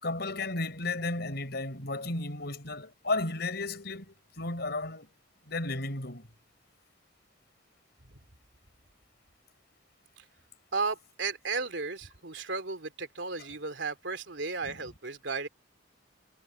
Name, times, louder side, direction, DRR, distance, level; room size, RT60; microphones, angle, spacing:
voice 1, 0.0-5.1 5.5-6.3 14.6-14.8, left 2 dB, 60° left, 5.7 m, -34 dB
voice 2, 10.7-15.5, right 4 dB, 70° right, 3.0 m, -34 dB
head